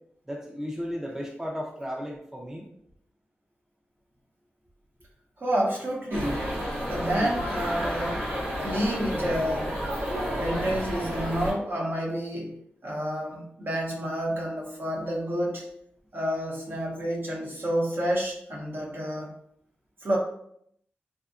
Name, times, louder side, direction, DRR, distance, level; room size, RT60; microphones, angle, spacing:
voice 1, 0.3-2.7, equal, 10° right, 0 dB, 0.4 m, -34 dB
voice 2, 5.4-6.5 6.9-8.3 8.6-9.8 10.4-12.6 12.8-15.7 16.1-19.3 20.0-20.2, equal, 55° right, -3 dB, 0.8 m, -29 dB
sound 1, 6.1-11.5, equal, 85° right, 0.9 m, -31 dB
2.7 x 2.2 x 2.4 m, 0.69 s
cardioid pair, 55°, 4 cm